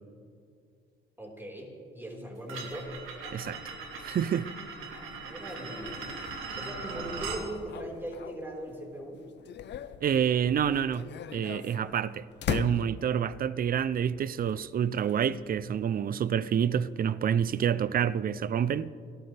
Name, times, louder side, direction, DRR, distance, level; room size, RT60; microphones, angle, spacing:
voice 1, 1.2-3.0 4.9-6.2 6.6-9.3, right 1 dB, 10° right, 4.6 m, -40 dB
sound 1, 2.5-7.4, right 4 dB, 85° right, 2.3 m, -40 dB
sound 2, 3.4-8.8 9.2-13.4 14.4-15.8, left 9 dB, 60° left, 0.7 m, -41 dB
voice 2, 4.0-4.5 10.0-18.9, right 8 dB, 45° right, 0.6 m, -28 dB
29.5 x 14.0 x 3.4 m
cardioid pair, 90°, 20 cm